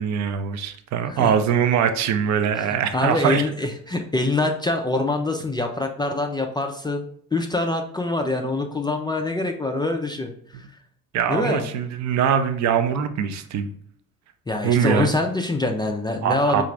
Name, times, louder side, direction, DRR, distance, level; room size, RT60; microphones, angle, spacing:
voice 1, 0.0-3.4 11.1-13.7 14.6-15.1 16.2-16.6, right 8 dB, 40° right, 9 dB, 0.5 m, -22 dB
voice 2, 2.9-7.0 7.3-10.7 11.3-11.7 14.5-16.6, left 2 dB, 10° left, 3 dB, 0.4 m, -24 dB
4.7 x 2.5 x 3.3 m, 0.62 s
figure-of-eight pair, 50°, 44 cm